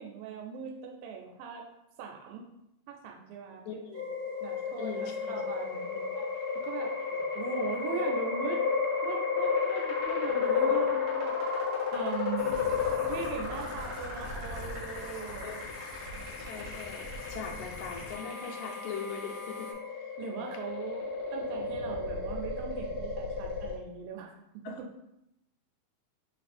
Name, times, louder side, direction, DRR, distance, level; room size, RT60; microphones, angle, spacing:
voice 1, 0.0-1.6 2.0-2.4 2.9-3.8 4.4-6.3 6.6-7.0 7.3-8.6 9.0-11.6 11.9-12.8 13.1-15.6 20.2-24.9, right 7 dB, 85° right, 1 dB, 2.0 m, -40 dB
voice 2, 3.7-4.0 4.8-5.4 7.1-7.2 10.7-10.8 12.2-12.6 15.4-15.6 16.1-20.1 24.6-24.8, left 5 dB, 85° left, 2 dB, 2.0 m, -41 dB
sound 1, 3.9-23.8, left 5 dB, 50° right, 1.5 m, -33 dB
sound 2, 12.4-19.7, equal, 70° left, 1.6 m, -43 dB
4.6 x 2.5 x 4.2 m, 0.83 s
omnidirectional pair, 3.3 m